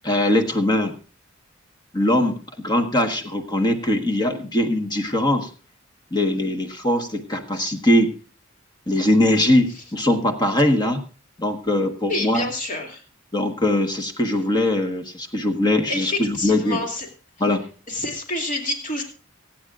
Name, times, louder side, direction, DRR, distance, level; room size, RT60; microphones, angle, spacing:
voice 1, 0.0-0.9 1.9-5.5 6.1-8.1 8.9-11.0 11.4-12.4 13.3-16.8 17.4-17.6, left 1 dB, 20° left, 5 dB, 1.3 m, -21 dB
voice 2, 12.1-13.0 15.9-17.1 17.9-19.0, left 2 dB, 40° left, 2 dB, 2.5 m, -28 dB
24.0 x 8.9 x 2.5 m, 0.36 s
head